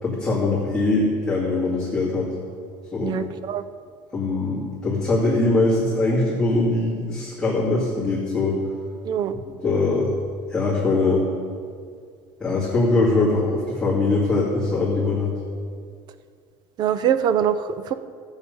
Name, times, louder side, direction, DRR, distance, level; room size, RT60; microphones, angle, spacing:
voice 1, 0.0-2.3 2.9-3.2 4.1-8.6 9.3-10.1 10.5-11.3 12.4-15.3, left 2 dB, 5° left, -11 dB, 2.5 m, -22 dB
voice 2, 3.0-3.6 9.0-9.3 16.8-17.9, right 9 dB, 35° right, 12 dB, 0.6 m, -23 dB
15.0 x 8.2 x 5.5 m, 2.2 s
cardioid pair, 165°, 12 cm